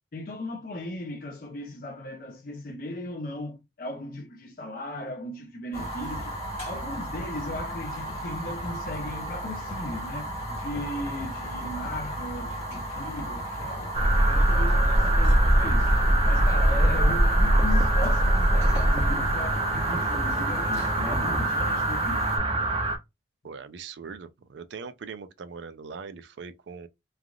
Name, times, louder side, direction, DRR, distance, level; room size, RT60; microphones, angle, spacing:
voice 1, 0.1-14.0 14.2-15.9 16.3-22.3, left 1 dB, 50° left, 0.5 m, -37 dB
Fire, 5.7-22.4, right 1 dB, 35° left, 1.2 m, -35 dB
sound 1, 13.9-23.0, right 1 dB, 30° right, 0.6 m, -22 dB
voice 2, 23.4-26.9, right 5 dB, 75° right, 0.4 m, -41 dB
3.3 x 2.4 x 2.2 m
head